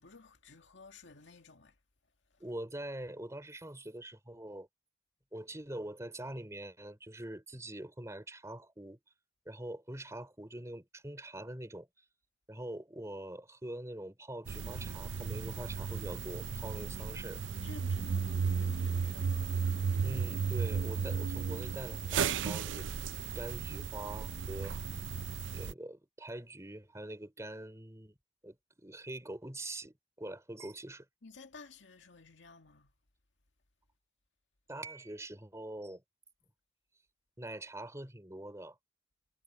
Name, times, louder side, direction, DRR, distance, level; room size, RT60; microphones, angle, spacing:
voice 1, 0.0-1.8 2.3-2.4 17.0-17.1 17.6-19.6 31.2-32.9, left 3 dB, 80° left, 2.1 m, -54 dB
voice 2, 2.4-4.7 5.3-9.0 9.5-11.9 12.5-17.4 20.0-22.9 23.3-24.8 25.5-28.1 28.4-31.1 34.7-36.0 37.4-38.8, right 1 dB, 15° right, 3.8 m, -44 dB
sound 1, 14.5-25.7, right 6 dB, 80° right, 0.5 m, -34 dB
head